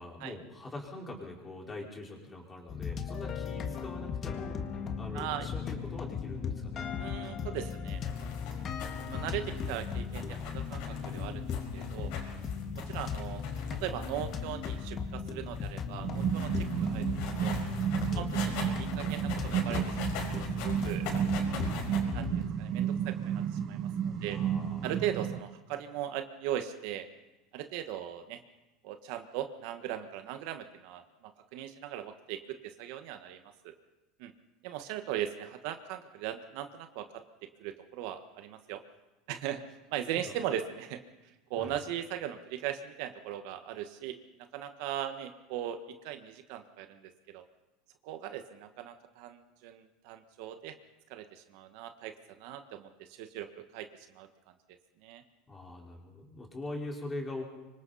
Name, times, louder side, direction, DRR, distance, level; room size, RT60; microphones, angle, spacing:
voice 1, 0.0-4.6 5.0-6.8 18.1-18.3 24.2-25.0 40.2-40.3 41.6-41.8 55.5-57.4, left 2 dB, 15° left, -2 dB, 4.6 m, -43 dB
sound 1, 2.7-22.5, left 6 dB, 35° left, 1.8 m, -37 dB
voice 2, 5.1-5.5 7.0-8.0 9.1-11.5 11.7-12.1 12.7-13.4 13.7-17.1 17.4-17.6 18.1-21.6 22.1-24.4 24.8-27.1 27.5-28.4 28.8-33.7 34.2-34.3 34.6-38.8 39.3-39.6 39.9-41.0 41.5-44.2 44.5-47.4 48.0-50.7 51.1-53.9 54.1-54.3 55.0-55.2, right 11 dB, 65° right, 8 dB, 1.4 m, -39 dB
sound 2, 7.9-22.0, left 6 dB, 65° left, 5.5 m, -44 dB
sound 3, 16.0-25.4, right 9 dB, 40° right, 1.1 m, -32 dB
26.0 x 24.0 x 4.2 m, 1.1 s
supercardioid pair, 145°, 0 cm